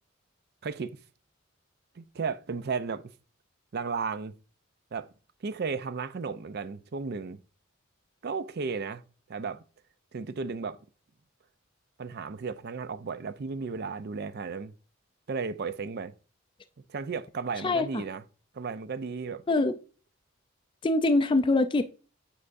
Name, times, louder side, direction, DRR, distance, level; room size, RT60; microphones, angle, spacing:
voice 1, 0.6-1.0 2.0-3.0 3.7-4.3 4.9-5.1 5.4-7.4 8.2-9.0 9.3-9.6 10.1-10.8 12.0-14.7 15.3-16.1 16.9-18.2 18.5-19.4, right 5 dB, 50° right, 0.5 m, -34 dB
voice 2, 17.6-18.0 19.5-19.7 20.8-21.9, left 2 dB, 25° left, 0.4 m, -24 dB
8.9 x 4.8 x 2.6 m
head